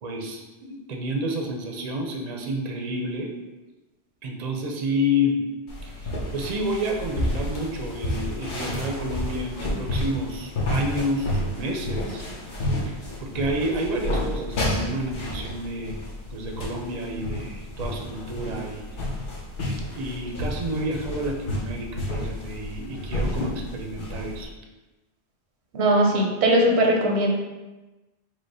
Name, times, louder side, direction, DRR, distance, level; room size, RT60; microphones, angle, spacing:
voice 1, 0.0-3.3 4.2-5.4 5.8-12.3 12.9-13.0 13.2-16.0 16.3-18.9 19.8-24.5, equal, 45° right, 1 dB, 0.7 m, -30 dB
sound 1, 5.7-24.4, left 1 dB, 55° left, 1.0 m, -31 dB
voice 2, 25.7-27.3, right 1 dB, 85° right, 1 dB, 1.0 m, -20 dB
5.0 x 2.1 x 4.7 m, 1.1 s
omnidirectional pair, 1.1 m